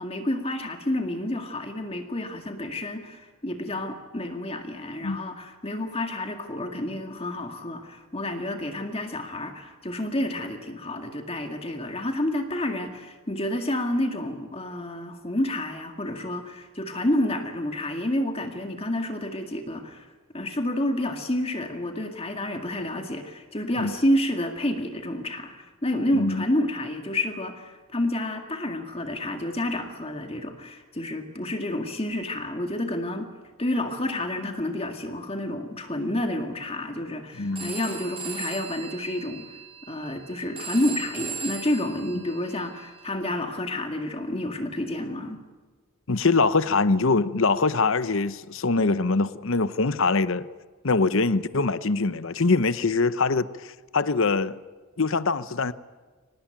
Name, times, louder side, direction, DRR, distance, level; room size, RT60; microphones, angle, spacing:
voice 1, 0.0-20.1 20.3-33.3 33.6-39.6 39.9-45.4, left 1 dB, 25° left, 2.0 m, -29 dB
voice 2, 26.1-26.4 37.4-37.7 42.1-42.2 46.1-50.5 50.8-54.6 55.0-55.7, left 3 dB, 60° left, 0.9 m, -23 dB
Telephone, 37.6-43.1, right 6 dB, 25° right, 4.3 m, -39 dB
25.0 x 18.5 x 9.0 m
head